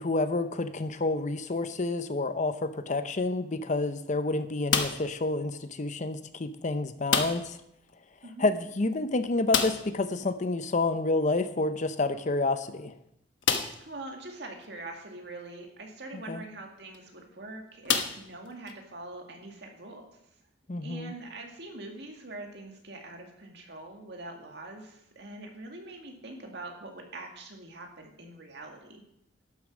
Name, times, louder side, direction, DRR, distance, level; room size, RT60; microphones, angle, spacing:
voice 1, 0.0-7.6 8.4-12.9 16.3-16.4 20.7-21.1, left 2 dB, 40° left, 11 dB, 0.7 m, -29 dB
sound 1, 4.7-5.2 7.1-7.6 7.9-8.0 8.3-8.4 9.5-10.0 11.8-11.9 12.5-12.6 13.4-13.9 14.6-14.7 16.8-17.0 17.9-18.7, left 7 dB, 80° left, 1.1 m, -29 dB
voice 2, 13.8-20.2 20.8-29.0, right 2 dB, 65° right, 2 dB, 2.1 m, -43 dB
11.5 x 7.1 x 6.1 m, 0.77 s
head